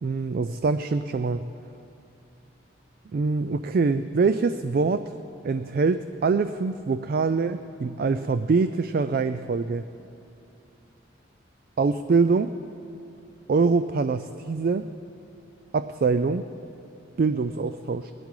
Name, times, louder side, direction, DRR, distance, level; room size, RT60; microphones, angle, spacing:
voice 1, 0.0-1.5 3.1-5.1 5.4-9.9 11.8-12.5 13.5-14.9 15.7-16.5 17.2-18.1, right 4 dB, 50° right, 11 dB, 0.3 m, -24 dB
19.0 x 12.0 x 4.8 m, 2.7 s
head